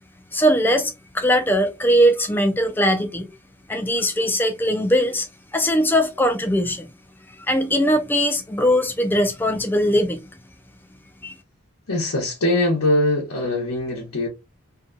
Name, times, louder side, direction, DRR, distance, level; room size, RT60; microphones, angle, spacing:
voice 1, 0.3-3.3 3.7-5.3 5.5-6.9 7.5-10.3 11.2-11.3, equal, 10° left, 0.3 m, -20 dB
voice 2, 11.9-14.3, left 1 dB, 80° left, 0.9 m, -22 dB
2.7 x 2.3 x 2.5 m
head